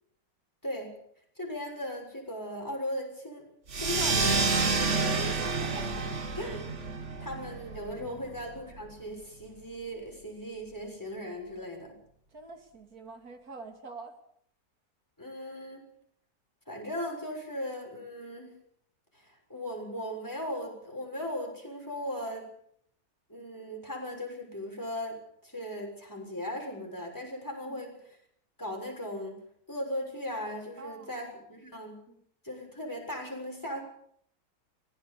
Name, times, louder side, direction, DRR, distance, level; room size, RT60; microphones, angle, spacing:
voice 1, 0.6-1.0 1.4-3.5 3.8-6.1 6.3-6.7 7.2-11.9 15.2-15.8 16.7-18.6 19.1-22.5 23.3-28.2 28.6-29.4 29.7-32.0 32.4-33.8, equal, 10° left, 1 dB, 6.5 m, -38 dB
sound 1, 3.7-8.8, right 4 dB, 50° right, 1.9 m, -29 dB
voice 2, 12.3-14.2 27.7-27.8 30.8-31.2 32.1-32.2, right 4 dB, 70° right, 6 dB, 3.1 m, -46 dB
24.5 x 17.0 x 7.0 m, 0.65 s
omnidirectional pair, 1.6 m